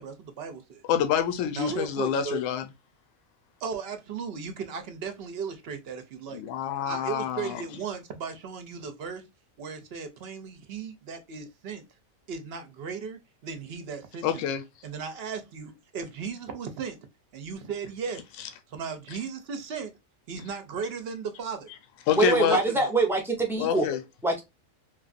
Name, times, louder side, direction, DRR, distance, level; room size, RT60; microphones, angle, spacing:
voice 1, 0.0-0.8 1.5-2.4 3.6-6.4 6.9-9.2 9.6-11.8 12.3-14.4 14.8-17.0 17.3-18.2 18.7-19.9 20.3-21.7 22.2-22.8, right 6 dB, 60° right, 0.7 m, -36 dB
voice 2, 0.9-2.7 6.3-7.6 14.2-14.6 22.1-22.6 23.6-24.0, left 9 dB, 75° left, 0.9 m, -27 dB
voice 3, 22.1-23.9 24.2-24.4, right 3 dB, 5° right, 0.4 m, -24 dB
3.1 x 2.4 x 2.4 m
omnidirectional pair, 1.4 m